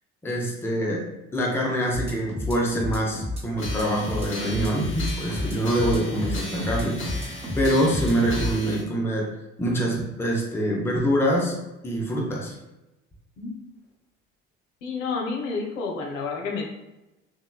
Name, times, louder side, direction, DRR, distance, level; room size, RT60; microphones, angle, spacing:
voice 1, 0.2-9.3 9.6-11.6 11.8-12.6, equal, 5° left, -2 dB, 0.5 m, -25 dB
sound 1, 1.9-8.5, left 1 dB, 15° right, 1.0 m, -31 dB
sound 2, 3.6-8.8, left 1 dB, 30° left, 1.0 m, -38 dB
voice 2, 14.8-16.7, left 4 dB, 70° left, 1 dB, 0.6 m, -30 dB
3.0 x 2.2 x 2.3 m, 0.97 s
figure-of-eight pair, 55°, 39 cm